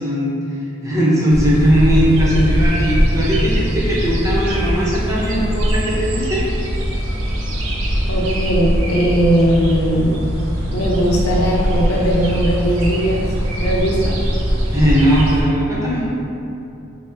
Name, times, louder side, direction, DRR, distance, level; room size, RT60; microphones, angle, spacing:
voice 1, 0.0-6.4 14.7-16.1, equal, 15° right, -7 dB, 0.7 m, -18 dB
sound 1, 1.3-15.4, equal, 70° right, 0.5 m, -21 dB
voice 2, 8.1-10.2 10.7-13.3 13.6-14.2, right 1 dB, 85° left, -3 dB, 0.6 m, -18 dB
5.7 x 2.1 x 2.6 m, 2.7 s
head